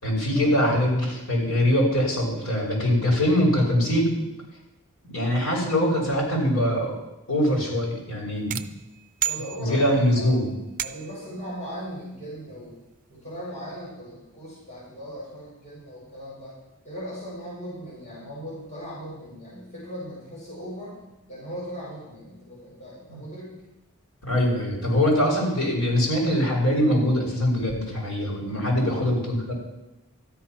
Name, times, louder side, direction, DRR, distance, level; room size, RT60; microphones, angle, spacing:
voice 1, 0.0-4.1 5.0-6.9 7.3-8.6 9.6-10.5 23.1-23.2 24.2-29.5, equal, 80° left, -3 dB, 5.5 m, -23 dB
sound 1, 8.5-10.1 10.8-11.3, right 12 dB, 35° right, 0.5 m, -32 dB
voice 2, 9.2-10.5 10.8-12.7 13.1-16.5 16.8-21.0 21.3-23.6 28.7-29.1, equal, 30° left, -8 dB, 6.4 m, -38 dB
13.0 x 10.5 x 6.0 m, 0.96 s
head